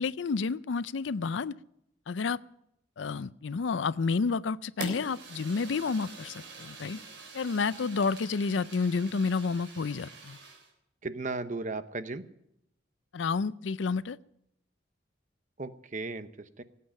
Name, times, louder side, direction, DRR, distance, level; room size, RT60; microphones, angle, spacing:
voice 1, 0.0-1.5 2.1-2.4 3.0-7.0 7.3-10.4 13.1-14.2, left 4 dB, 80° left, 18 dB, 0.5 m, -30 dB
Fire, 4.8-10.7, right 3 dB, 75° right, 3.5 m, -45 dB
voice 2, 11.0-12.2 15.6-16.6, right 3 dB, 40° right, 12 dB, 0.9 m, -36 dB
18.0 x 8.5 x 8.8 m, 0.78 s
head